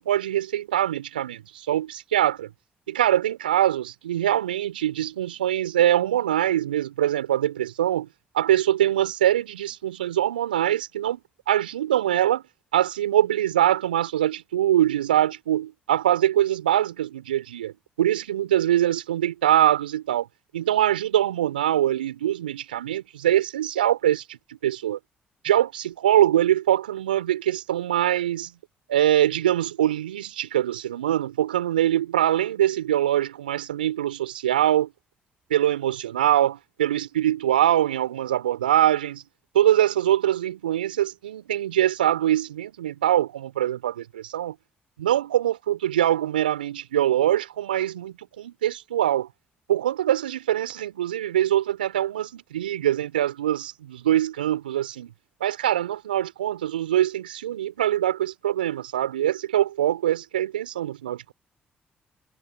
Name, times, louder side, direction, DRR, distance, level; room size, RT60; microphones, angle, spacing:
voice 1, 0.0-2.5 2.9-8.1 8.3-11.2 11.5-12.4 12.7-17.7 18.0-20.3 20.5-25.0 25.4-28.5 28.9-34.9 35.5-39.2 39.5-44.6 45.0-49.3 49.7-55.1 55.4-61.3, right 12 dB, 85° right, 5.1 m, -23 dB
figure-of-eight pair, 40°, 5 cm